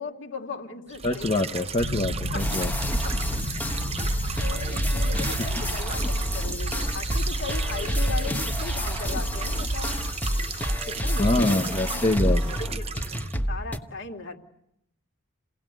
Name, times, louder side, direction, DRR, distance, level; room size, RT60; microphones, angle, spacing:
voice 1, 0.0-1.7 2.3-2.6 3.7-3.9 4.4-10.0 10.9-12.1 12.5-12.8 13.5-14.4, left 3 dB, 55° left, 4 dB, 2.6 m, -37 dB
sound 1, 0.9-13.3, right 5 dB, 25° right, 0.9 m, -36 dB
voice 2, 1.0-2.7 5.4-5.5 11.2-12.4, left 2 dB, 30° left, 4 dB, 0.9 m, -25 dB
sound 2, 1.8-10.1, right 1 dB, 70° left, 3.8 m, -32 dB
sound 3, 2.4-13.8, equal, 10° left, 1.2 m, -28 dB
28.5 x 17.5 x 9.2 m, 0.78 s
head